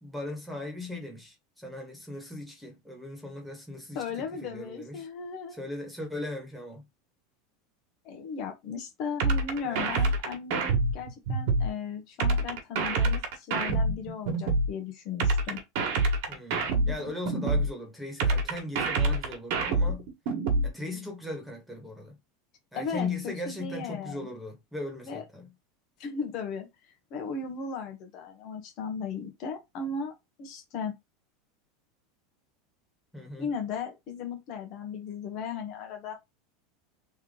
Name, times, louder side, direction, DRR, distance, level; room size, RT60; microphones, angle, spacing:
voice 1, 0.0-5.1 5.5-6.8 9.6-9.9 16.3-20.1 20.6-22.1 22.7-25.5 33.1-33.5, left 2 dB, ahead, 1.6 m, -38 dB
voice 2, 3.9-5.6 8.0-15.6 22.7-24.2 25.0-25.2 26.0-30.1 30.4-30.9 33.4-36.2, left 5 dB, 50° left, 1.2 m, -36 dB
sound 1, 9.2-11.7 12.2-14.7 15.2-17.7 18.2-20.7, right 3 dB, 65° right, 1.4 m, -26 dB
3.5 x 3.0 x 3.8 m
supercardioid pair, 140°, 0 cm